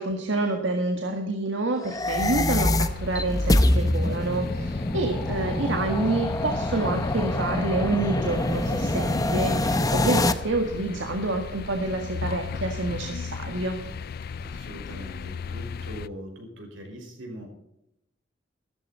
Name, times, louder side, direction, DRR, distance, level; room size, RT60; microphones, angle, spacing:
voice 1, 0.0-13.8, right 2 dB, 70° right, 3 dB, 1.7 m, -28 dB
sound 1, 1.8-10.3, left 1 dB, 20° left, 0.8 m, -25 dB
sound 2, 2.2-16.1, left 6 dB, 50° left, 0.4 m, -36 dB
voice 2, 14.4-17.5, equal, 85° right, 2 dB, 5.5 m, -41 dB
14.0 x 13.5 x 4.3 m, 0.83 s
head